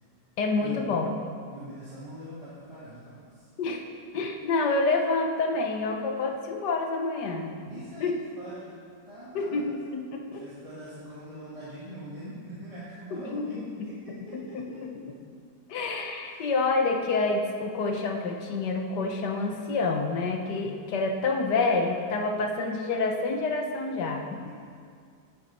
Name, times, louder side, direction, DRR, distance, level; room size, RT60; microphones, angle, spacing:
voice 1, 0.4-1.1 3.6-3.8 4.1-7.5 8.0-8.1 9.3-10.4 13.1-13.9 14.3-14.9 15.7-24.4, left 3 dB, 70° left, 3 dB, 1.4 m, -28 dB
voice 2, 1.5-3.5 7.7-8.7 9.0-9.7 10.4-14.8 16.2-16.4 24.4-24.5, right 1 dB, 20° right, -10 dB, 1.6 m, -43 dB
9.4 x 8.9 x 4.2 m, 2.2 s
omnidirectional pair, 1.9 m